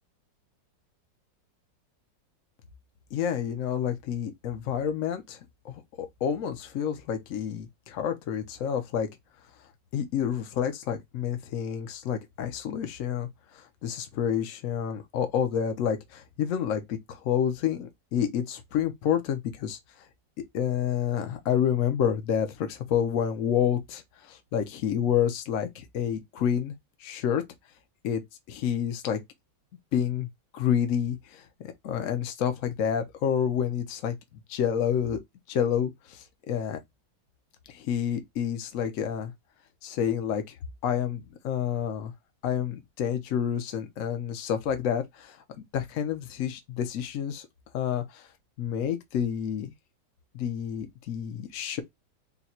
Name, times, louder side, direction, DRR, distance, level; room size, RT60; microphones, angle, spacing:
voice 1, 3.1-5.4 5.6-9.1 9.9-13.3 13.5-19.8 20.5-26.7 27.0-27.4 28.0-28.2 28.5-29.2 29.9-30.3 30.5-34.1 34.5-35.2 35.5-36.8 37.7-39.3 39.8-40.4 40.8-42.1 42.4-47.5 47.7-48.3 48.6-49.7 50.3-51.8, left 8 dB, 55° left, 1.0 m, -29 dB
3.9 x 2.2 x 4.3 m
omnidirectional pair, 2.0 m